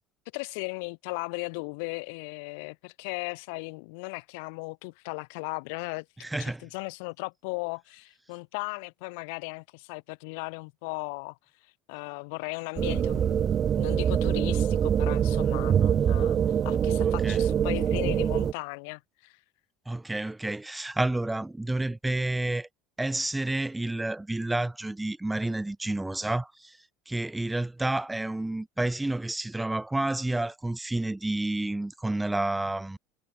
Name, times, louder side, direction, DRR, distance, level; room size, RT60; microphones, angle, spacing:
voice 1, 0.3-6.0 6.4-11.4 11.9-16.4 16.6-19.4, left 32 dB, 75° left, 0.9 m, -37 dB
voice 2, 6.2-6.7 17.0-17.4 19.9-22.7 23.0-26.8 27.1-33.0, right 2 dB, 10° right, 0.9 m, -30 dB
sound 1, 12.8-18.5, right 8 dB, 40° right, 0.5 m, -24 dB
supercardioid pair, 95°, 0 cm